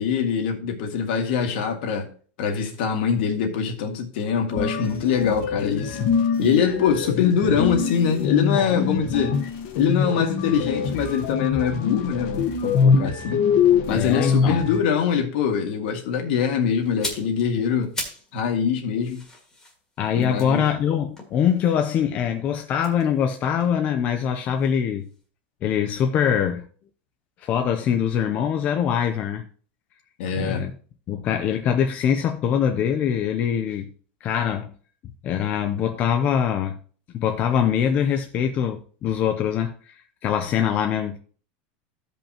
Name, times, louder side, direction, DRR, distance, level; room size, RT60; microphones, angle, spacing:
voice 1, 0.0-2.1 2.4-6.0 6.4-9.4 9.7-13.4 13.9-17.9 18.3-19.2 20.1-20.7 30.2-30.7, left 7 dB, 65° left, 2.0 m, -23 dB
sound 1, 4.5-14.8, left 6 dB, 45° left, 1.2 m, -24 dB
voice 2, 13.9-14.6 20.0-25.1 25.6-26.6 27.4-29.5 30.3-30.7 31.1-33.9 34.2-34.7 35.2-36.8 37.1-39.9 40.2-41.2, left 8 dB, 25° left, 0.6 m, -23 dB
sound 2, 16.8-18.3 18.6-21.9 22.7-24.8 25.0-25.2, left 2 dB, 10° left, 1.9 m, -38 dB
15.0 x 5.4 x 2.9 m
supercardioid pair, 170°, 6 cm